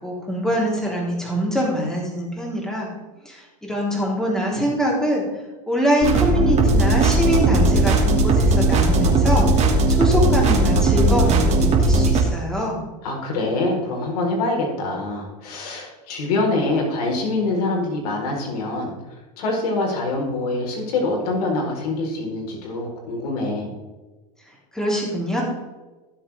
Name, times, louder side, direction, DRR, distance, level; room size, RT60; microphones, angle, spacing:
voice 1, 0.0-2.9 3.2-5.2 5.7-12.8 24.7-25.4, equal, 5° left, -4 dB, 3.8 m, -24 dB
sound 1, 6.0-12.2, right 2 dB, 35° right, 2.7 m, -17 dB
voice 2, 13.0-18.9 19.4-23.7, left 2 dB, 70° left, 0 dB, 4.4 m, -25 dB
17.5 x 7.6 x 3.6 m, 1.2 s
supercardioid pair, 115°, 20 cm